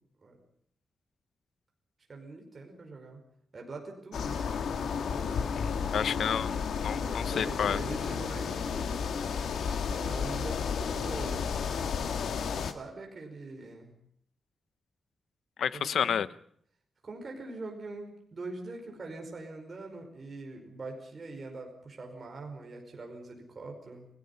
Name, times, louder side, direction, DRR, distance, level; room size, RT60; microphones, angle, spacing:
voice 1, 2.1-3.2 3.5-4.5 7.0-9.0 9.9-11.6 12.5-13.9 15.7-16.2 17.0-24.1, right 3 dB, 35° right, 2 dB, 5.1 m, -43 dB
sound 1, 4.1-12.7, left 6 dB, 85° left, 1.9 m, -32 dB
voice 2, 5.6-7.8 15.6-16.3, left 8 dB, 70° left, 16 dB, 0.8 m, -30 dB
30.0 x 18.5 x 5.6 m, 0.65 s
wide cardioid pair, 160°, 0 cm